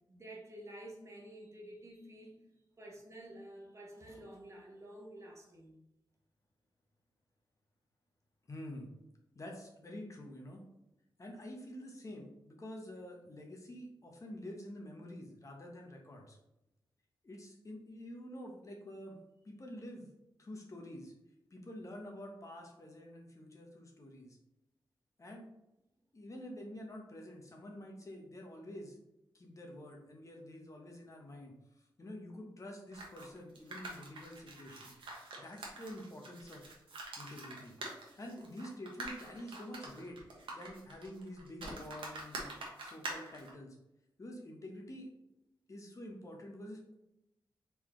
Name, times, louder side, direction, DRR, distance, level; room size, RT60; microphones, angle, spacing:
voice 1, 0.1-2.4 2.8-5.8, right 1 dB, 35° right, -1 dB, 1.2 m, -50 dB
voice 2, 8.5-8.9 9.3-10.6 11.2-16.4 17.2-19.2 19.4-20.1 20.4-21.1 21.5-24.4 25.2-25.5 26.1-29.0 29.3-31.5 32.0-34.9 35.4-36.7 37.2-37.8 38.1-40.2 40.5-42.5 42.8-43.8 44.2-45.1 45.7-46.9, left 1 dB, 40° left, 1 dB, 1.0 m, -48 dB
sound 1, 32.9-43.5, right 2 dB, 85° right, 1.1 m, -46 dB
4.4 x 3.8 x 3.1 m, 0.87 s
wide cardioid pair, 85°, 8 cm